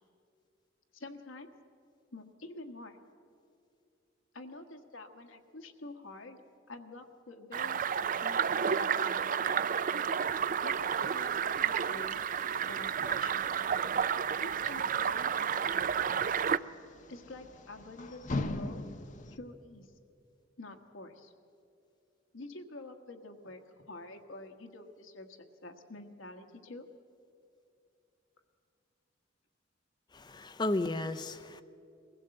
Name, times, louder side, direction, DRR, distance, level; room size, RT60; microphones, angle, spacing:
voice 1, 0.9-1.5 2.1-3.0 4.3-6.4 6.7-9.6 10.6-13.5 14.4-16.2 17.1-18.9 19.3-19.9 20.6-21.3 22.3-23.6 23.9-26.9, left 2 dB, 80° left, 4 dB, 1.5 m, -48 dB
sound 1, 7.5-16.6, right 7 dB, 40° right, 0.4 m, -31 dB
sound 2, 10.3-19.4, left 2 dB, 40° left, 0.8 m, -44 dB
voice 2, 30.1-31.6, left 2 dB, 20° left, 10 dB, 0.5 m, -33 dB
22.0 x 15.5 x 7.8 m, 2.5 s
head